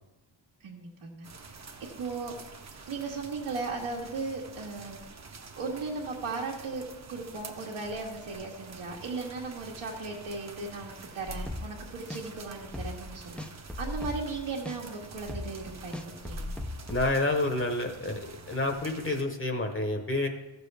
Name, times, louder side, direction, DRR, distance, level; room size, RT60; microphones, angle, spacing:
voice 1, 0.6-1.3 2.0-2.3 2.9-5.1 5.6-6.8 7.1-16.5, right 3 dB, 80° right, -5 dB, 1.5 m, -37 dB
sound 1, 1.2-19.2, right 4 dB, 35° right, 0.8 m, -48 dB
sound 2, 11.3-11.8 12.1-12.2 12.6-13.1 13.4-14.4 14.7-14.8 15.2-17.1, left 2 dB, ahead, 0.4 m, -37 dB
voice 2, 16.9-20.3, left 2 dB, 25° left, 4 dB, 0.9 m, -29 dB
14.5 x 6.8 x 3.4 m, 1.0 s
wide cardioid pair, 170°, 47 cm